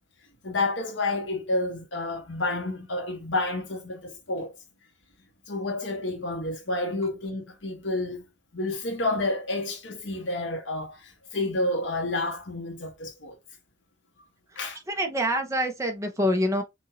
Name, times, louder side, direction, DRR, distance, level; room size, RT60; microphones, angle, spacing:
voice 1, 0.4-4.5 5.5-8.2 8.5-13.3 14.6-14.8, left 2 dB, 85° left, 1.5 m, -30 dB
voice 2, 14.9-16.6, equal, 15° right, 1.1 m, -26 dB
6.2 x 2.6 x 2.8 m
head